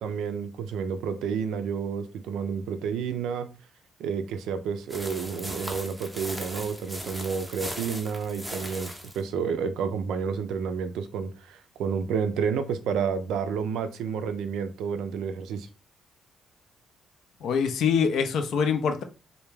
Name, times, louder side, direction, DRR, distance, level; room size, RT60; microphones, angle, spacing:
voice 1, 0.0-3.5 4.0-15.7, right 6 dB, 85° right, 0.3 m, -30 dB
sound 1, 4.9-9.2, equal, ahead, 0.6 m, -38 dB
voice 2, 17.4-19.0, left 6 dB, 75° left, 0.4 m, -24 dB
2.2 x 2.1 x 3.1 m
cardioid pair, 90°, 0 cm